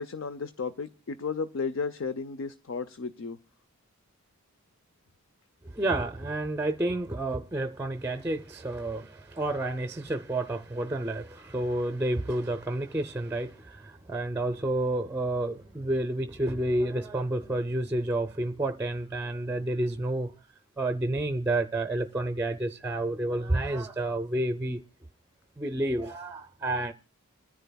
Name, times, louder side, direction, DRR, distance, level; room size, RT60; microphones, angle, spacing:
voice 1, 0.0-3.4, left 4 dB, 60° left, 0.5 m, -33 dB
voice 2, 5.6-20.3 20.8-24.8 25.6-26.9, right 1 dB, 10° right, 0.5 m, -30 dB
27.0 x 10.5 x 2.2 m
head